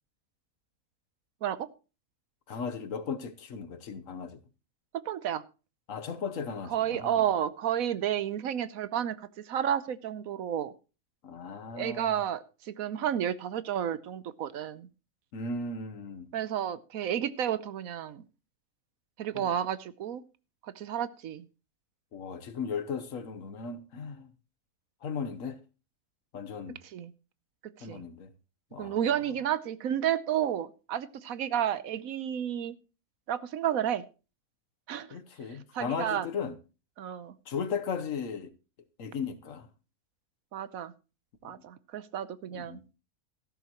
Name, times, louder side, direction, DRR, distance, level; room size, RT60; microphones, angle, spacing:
voice 1, 2.5-4.4 5.9-7.3 11.2-12.2 15.3-16.3 19.3-19.5 22.1-24.3 25.0-25.6 26.3-26.8 27.8-28.3 28.7-29.0 35.1-36.6 37.5-38.5 39.0-39.7 41.4-41.5 42.5-42.8, left 5 dB, 65° left, 1.3 m, -36 dB
voice 2, 5.0-5.4 6.7-9.2 9.4-10.7 11.7-14.9 16.3-18.2 19.2-20.2 20.6-21.5 26.9-27.1 27.8-28.1 28.8-32.7 33.3-34.0 34.9-35.1 35.7-36.3 37.0-37.3 40.5-40.9 41.4-42.8, right 10 dB, 75° right, 1.2 m, -31 dB
14.0 x 12.5 x 3.0 m
omnidirectional pair, 1.5 m